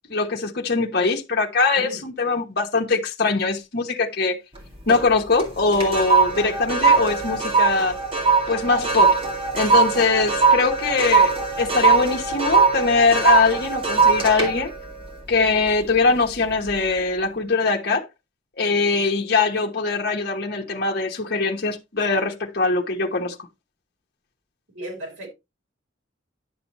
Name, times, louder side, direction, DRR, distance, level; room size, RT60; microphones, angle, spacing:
voice 1, 0.1-4.4 4.9-8.0 8.5-9.2 9.5-14.7 15.3-18.1 18.6-23.3, left 4 dB, 50° left, 1.1 m, -22 dB
sound 1, 4.6-5.1 5.4-16.0 16.4-16.7, right 5 dB, 30° right, 2.2 m, -20 dB
voice 2, 24.7-25.3, right 1 dB, 85° right, 4.2 m, -35 dB
10.5 x 6.9 x 3.0 m
head